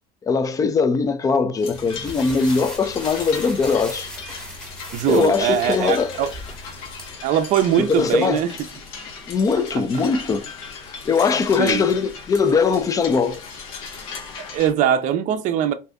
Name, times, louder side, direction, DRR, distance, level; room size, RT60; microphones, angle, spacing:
voice 1, 0.2-4.1 5.1-6.2 7.8-8.4 9.3-10.5 11.0-13.4, left 5 dB, 20° left, 0.3 m, -20 dB
sound 1, 1.6-14.7, left 5 dB, 85° left, 0.9 m, -37 dB
sound 2, 1.7-7.1, equal, 5° left, 0.9 m, -38 dB
voice 2, 4.9-6.3 7.2-8.5 9.7-9.8 11.6-11.8 14.4-15.7, right 10 dB, 45° right, 0.5 m, -21 dB
2.7 x 2.5 x 3.4 m
cardioid pair, 140°, 18 cm